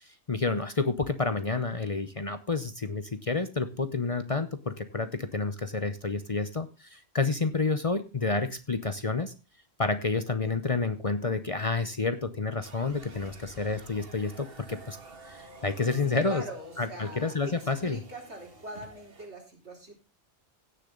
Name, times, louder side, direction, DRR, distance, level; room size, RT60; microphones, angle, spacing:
voice 1, 0.0-9.3 9.8-15.0 15.2-16.4 16.8-18.0, left 3 dB, 35° left, 10 dB, 0.8 m, -29 dB
sound 1, 12.6-19.3, right 2 dB, 55° right, 2.0 m, -50 dB
voice 2, 16.2-19.9, right 1 dB, 75° right, 0 dB, 4.0 m, -43 dB
16.5 x 6.9 x 3.8 m, 0.28 s
omnidirectional pair, 1.1 m